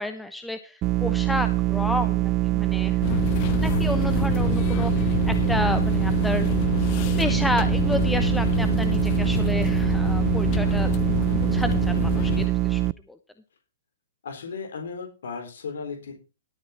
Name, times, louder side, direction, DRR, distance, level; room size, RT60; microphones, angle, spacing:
voice 1, 0.0-3.0 3.6-6.5 7.2-10.9 11.3-12.8 13.1-13.2, left 2 dB, 5° left, 9 dB, 0.9 m, -31 dB
sound 1, 0.8-12.9, right 19 dB, 30° right, 0.4 m, -24 dB
sound 2, 3.0-12.5, left 16 dB, 45° left, 0.5 m, -28 dB
voice 2, 14.2-16.2, left 5 dB, 75° left, 5 dB, 4.0 m, -35 dB
13.0 x 8.8 x 4.3 m, 0.33 s
hypercardioid pair, 135°, 0 cm